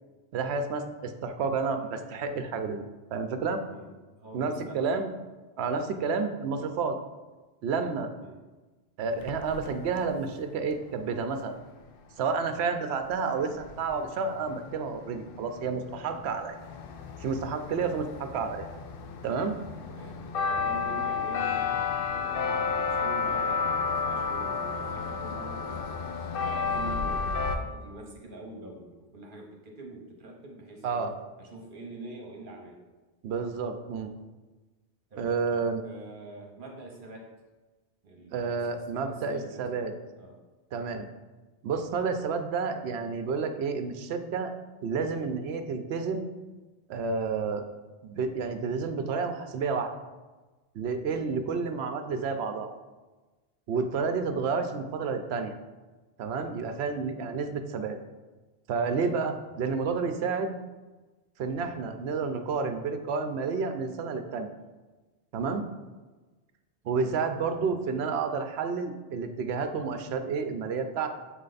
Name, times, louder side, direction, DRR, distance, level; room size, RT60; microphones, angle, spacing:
voice 1, 0.3-2.8 3.1-3.6 4.3-5.1 5.6-7.0 7.6-8.1 9.0-11.6 12.2-16.6 17.2-18.7 19.2-19.6 30.8-31.1 33.2-34.1 35.2-35.8 38.3-39.9 40.7-41.1 41.6-44.5 44.8-46.3 46.9-47.6 48.0-49.9 50.7-52.8 53.7-55.6 56.2-58.0 58.7-60.5 61.4-64.5 65.3-65.6 66.8-71.1, right 5 dB, 75° right, 7 dB, 0.8 m, -30 dB
voice 2, 3.6-5.0 6.0-6.1 8.2-8.4 12.5-12.7 17.8-18.0 19.8-21.7 22.1-26.0 26.4-31.0 31.4-32.8 35.1-37.3 38.0-39.9 40.2-40.4 40.9-41.0 59.5-59.8 66.9-67.1 67.4-67.7, right 2 dB, 50° right, 1 dB, 1.0 m, -45 dB
sound 1, 9.1-10.0 13.0-13.1 13.3-27.6, left 5 dB, 60° left, 0.7 m, -32 dB
7.6 x 3.2 x 3.9 m, 1.2 s
omnidirectional pair, 1.1 m